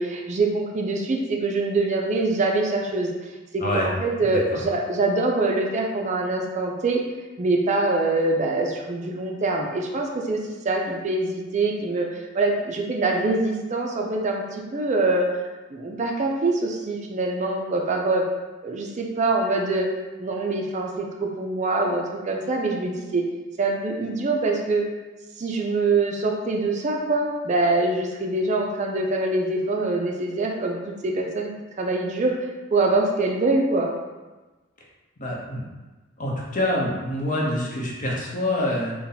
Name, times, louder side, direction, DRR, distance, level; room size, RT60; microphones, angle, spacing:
voice 1, 0.0-3.1 3.5-7.0 7.4-15.3 15.7-18.2 18.6-19.9 20.2-23.2 23.6-24.9 25.4-33.9, right 2 dB, 35° right, 1 dB, 0.4 m, -24 dB
voice 2, 4.2-4.6 35.2-35.6 36.2-38.9, left 1 dB, 40° left, -3 dB, 0.8 m, -26 dB
4.0 x 2.2 x 3.9 m, 1.2 s
head